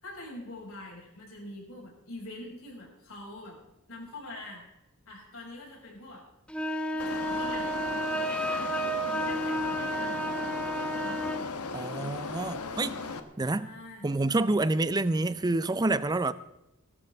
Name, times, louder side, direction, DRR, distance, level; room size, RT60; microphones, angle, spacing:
voice 1, 0.0-3.5 3.9-4.6 5.1-6.3 6.9-7.9 8.2-8.7 9.2-10.4 11.0-11.2 13.6-14.1, left 2 dB, 65° left, 6.0 m, -44 dB
sound 1, 6.5-11.5, right 1 dB, 5° left, 0.9 m, -31 dB
sound 2, 7.0-13.2, left 4 dB, 90° left, 1.2 m, -37 dB
voice 2, 11.7-13.0 13.4-13.7 14.0-16.3, right 2 dB, 20° right, 0.5 m, -28 dB
21.0 x 12.0 x 3.5 m
head